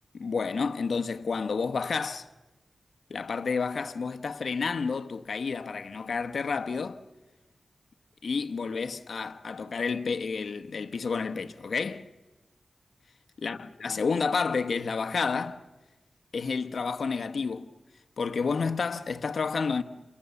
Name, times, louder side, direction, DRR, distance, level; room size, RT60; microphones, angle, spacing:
voice 1, 0.1-2.3 3.1-7.0 8.2-12.1 13.4-15.6 16.3-17.7 18.2-19.8, left 5 dB, 85° left, 1.1 m, -30 dB
29.0 x 28.0 x 7.0 m
wide cardioid pair, 75°, 0 cm